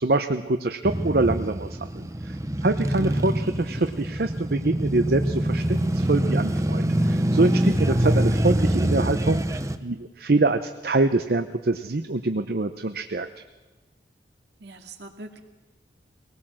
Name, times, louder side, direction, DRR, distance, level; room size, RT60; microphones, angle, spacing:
voice 1, 0.0-2.4 2.6-13.3, right 2 dB, 55° right, 8 dB, 0.7 m, -25 dB
Male speech man speaking / Motorcycle / Idling, 0.8-9.8, right 1 dB, 15° right, 0.8 m, -24 dB
voice 2, 2.8-3.4 7.8-8.4 14.6-15.4, right 2 dB, 70° right, 5 dB, 2.2 m, -42 dB
22.5 x 18.5 x 7.6 m, 1.2 s
head